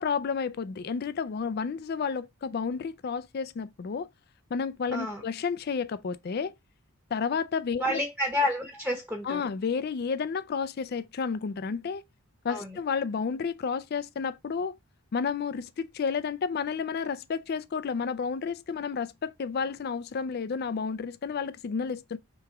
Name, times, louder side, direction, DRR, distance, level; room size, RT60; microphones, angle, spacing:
voice 1, 0.0-4.1 4.5-6.5 7.1-8.0 9.2-12.0 12.4-14.7 15.1-22.2, left 5 dB, 45° left, 0.3 m, -31 dB
voice 2, 4.9-5.2 7.8-9.4 12.5-12.8, left 1 dB, 5° right, 0.8 m, -30 dB
3.5 x 3.0 x 4.5 m
head